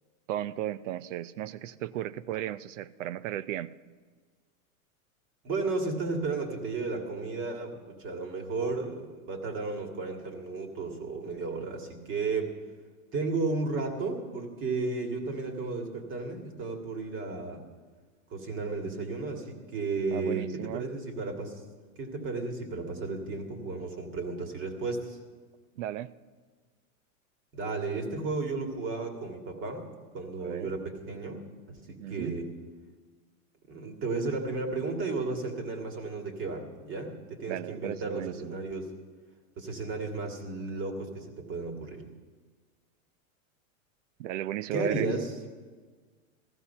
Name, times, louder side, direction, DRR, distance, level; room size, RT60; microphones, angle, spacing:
voice 1, 0.3-3.7 20.1-20.8 25.8-26.1 30.4-30.7 32.0-32.3 37.5-38.6 44.2-45.1, right 12 dB, 60° right, 17 dB, 0.7 m, -35 dB
voice 2, 5.4-12.5 13.1-17.6 18.3-21.6 22.0-25.2 27.5-29.9 30.1-31.4 31.7-32.5 33.7-38.9 39.6-42.0 44.7-45.3, right 3 dB, 30° right, 4 dB, 2.2 m, -33 dB
15.0 x 14.5 x 5.7 m, 1.5 s
supercardioid pair, 150°, 42 cm